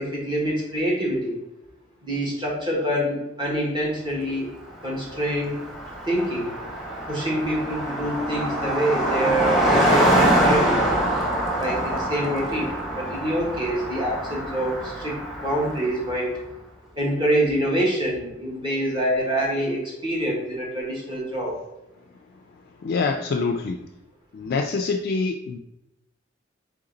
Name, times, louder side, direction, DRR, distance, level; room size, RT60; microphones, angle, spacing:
voice 1, 0.0-1.4 2.0-4.5 4.8-5.6 6.1-6.5 7.1-11.0 11.6-15.1 15.4-16.3 17.0-21.5, equal, 25° right, -3 dB, 1.4 m, -26 dB
Car passing by, 4.8-4.9 5.1-16.1, right 1 dB, ahead, 1.0 m, -24 dB
voice 2, 22.8-23.8 24.3-25.6, left 4 dB, 55° left, 5 dB, 0.3 m, -25 dB
3.9 x 3.5 x 3.8 m, 0.89 s
head